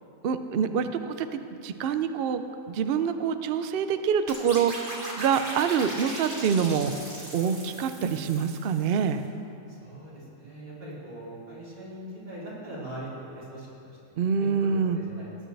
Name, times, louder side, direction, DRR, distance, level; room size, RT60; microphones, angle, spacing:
voice 1, 0.2-7.0 7.3-9.2 14.2-15.0, right 7 dB, 75° right, 9 dB, 0.5 m, -26 dB
sound 1, 4.3-9.1, right 1 dB, 30° right, 2.2 m, -39 dB
voice 2, 9.7-13.7 14.4-15.3, right 1 dB, 90° right, -9 dB, 4.0 m, -41 dB
18.0 x 10.0 x 3.3 m, 2.7 s
omnidirectional pair, 1.7 m